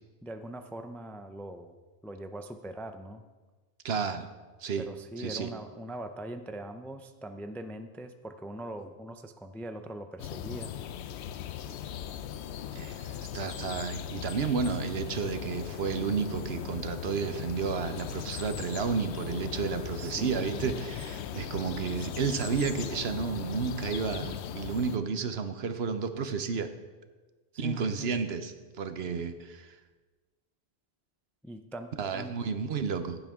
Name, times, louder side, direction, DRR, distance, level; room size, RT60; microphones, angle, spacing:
voice 1, 0.2-1.8 2.0-3.2 4.8-10.7 20.0-20.9 22.0-22.4 27.5-28.2 31.4-32.4, right 1 dB, 5° left, 8 dB, 0.3 m, -42 dB
voice 2, 3.8-4.3 4.6-4.9 5.2-5.5 12.7-26.7 27.6-29.8 32.0-33.2, right 5 dB, 70° right, 9 dB, 1.1 m, -32 dB
sound 1, 10.2-25.0, left 10 dB, 85° left, 0.9 m, -38 dB
15.5 x 10.5 x 3.7 m, 1.3 s
omnidirectional pair, 1.1 m